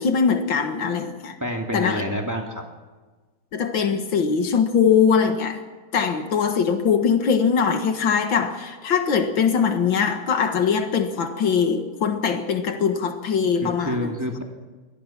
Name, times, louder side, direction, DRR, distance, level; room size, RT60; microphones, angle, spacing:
voice 1, 0.0-1.4 1.7-2.0 3.5-5.6 5.9-14.1, left 6 dB, 85° left, 7 dB, 2.4 m, -21 dB
voice 2, 1.4-2.6 13.6-14.4, equal, 10° right, 1 dB, 2.7 m, -28 dB
24.0 x 18.5 x 6.0 m, 1.3 s
omnidirectional pair, 2.0 m